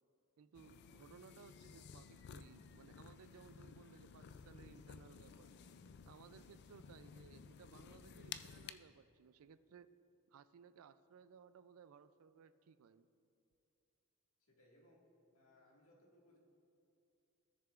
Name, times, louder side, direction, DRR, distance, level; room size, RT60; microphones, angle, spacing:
voice 1, 0.4-5.5 6.1-9.9 10.3-13.1, right 6 dB, 70° right, 13 dB, 0.4 m, -61 dB
sound 1, 0.5-8.7, left 7 dB, 50° left, 0.3 m, -55 dB
voice 2, 14.4-15.1 15.3-16.4, left 1 dB, 75° left, -3 dB, 1.8 m, -68 dB
16.5 x 6.8 x 2.4 m, 2.7 s
head